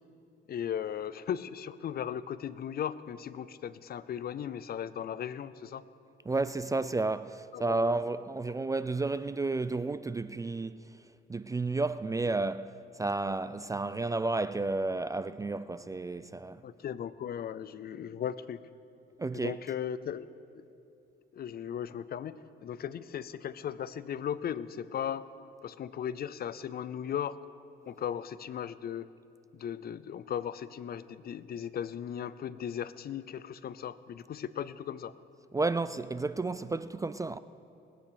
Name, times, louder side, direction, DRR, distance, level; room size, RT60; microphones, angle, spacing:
voice 1, 0.5-5.8 7.5-7.9 16.6-18.6 19.3-20.3 21.3-25.2 25.6-27.4 27.9-29.1 29.5-35.1, left 9 dB, 50° left, 0.5 m, -37 dB
voice 2, 6.3-10.9 11.3-16.6 19.2-19.6 35.5-37.4, right 3 dB, 15° right, 0.3 m, -32 dB
20.0 x 9.0 x 5.0 m
cardioid pair, 90°, 20 cm